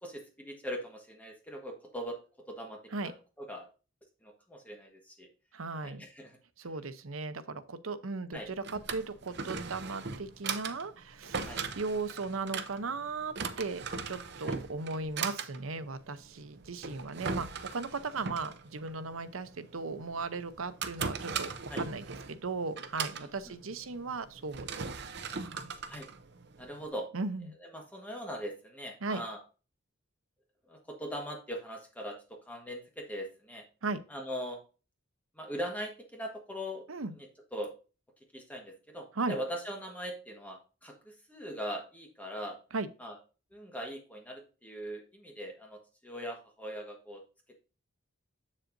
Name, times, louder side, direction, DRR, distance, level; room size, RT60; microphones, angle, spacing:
voice 1, 0.0-2.2 2.5-3.1 3.4-3.7 4.2-5.3 5.8-6.4 8.3-8.5 11.4-11.6 14.4-14.5 21.7-21.8 23.2-23.3 25.9-26.1 26.6-27.1 27.6-29.4 30.7-33.6 34.1-34.6 35.4-36.9 37.2-37.7 38.3-42.6 43.0-43.2 43.5-47.2, equal, 10° left, 1 dB, 1.4 m, -41 dB
voice 2, 5.5-6.0 6.6-24.7 25.4-25.7 27.1-27.5 29.0-29.2 33.8-34.0 36.9-37.1 39.2-39.3 42.7-42.9, right 3 dB, 85° right, 11 dB, 0.8 m, -37 dB
Drawer open or close, 8.3-26.9, right 5 dB, 55° right, 0.7 m, -39 dB
7.8 x 7.4 x 2.6 m, 0.34 s
head